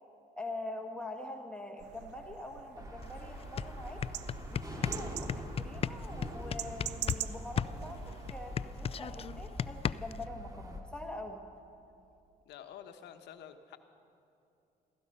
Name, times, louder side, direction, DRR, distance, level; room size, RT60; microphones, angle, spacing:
voice 1, 0.3-4.0 4.5-5.3 5.6-8.0 8.3-11.4, left 2 dB, 5° left, 2 dB, 1.5 m, -44 dB
sound 1, 1.8-8.3, right 13 dB, 80° right, 0.6 m, -45 dB
sound 2, 2.7-10.8, equal, 20° right, 2.3 m, -44 dB
sound 3, 3.0-3.1 3.4-7.3 7.6-10.3, left 8 dB, 35° left, 0.4 m, -35 dB
voice 2, 12.4-13.8, left 9 dB, 75° left, 7 dB, 1.1 m, -49 dB
16.0 x 15.0 x 5.5 m, 2.7 s
supercardioid pair, 70°, 18 cm